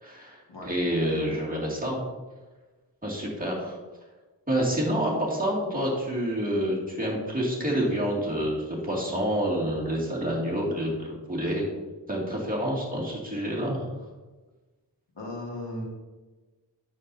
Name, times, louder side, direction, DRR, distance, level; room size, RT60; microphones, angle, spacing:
voice 1, 0.0-2.0 3.0-3.8 4.5-11.7 12.1-13.9, equal, 20° right, -4 dB, 2.4 m, -28 dB
voice 2, 15.1-15.8, left 1 dB, 80° left, -3 dB, 2.2 m, -36 dB
9.5 x 6.8 x 2.8 m, 1.2 s
wide cardioid pair, 45°, 42 cm